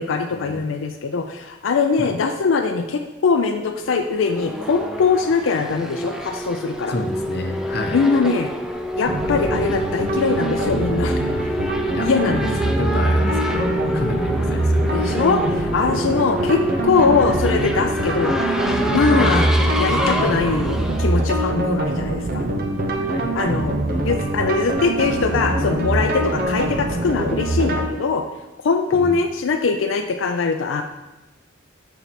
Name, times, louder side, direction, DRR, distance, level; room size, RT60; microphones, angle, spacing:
voice 1, 0.0-6.9 7.9-8.5 9.0-11.2 12.0-12.5 13.9-14.1 14.9-19.5 19.8-22.4 23.3-28.2 28.6-30.8, left 4 dB, 85° left, 5 dB, 0.4 m, -22 dB
Race car auto racing / Accelerating revving vroom, 3.9-22.1, equal, 5° right, 0.4 m, -27 dB
voice 2, 6.9-8.0 11.2-11.3 11.9-15.0 15.9-16.2 23.1-23.3 28.9-29.2, left 1 dB, 55° left, 3 dB, 0.8 m, -29 dB
sound 1, 9.1-27.9, right 1 dB, 50° right, 0.7 m, -23 dB
6.8 x 4.5 x 4.1 m, 1.0 s
head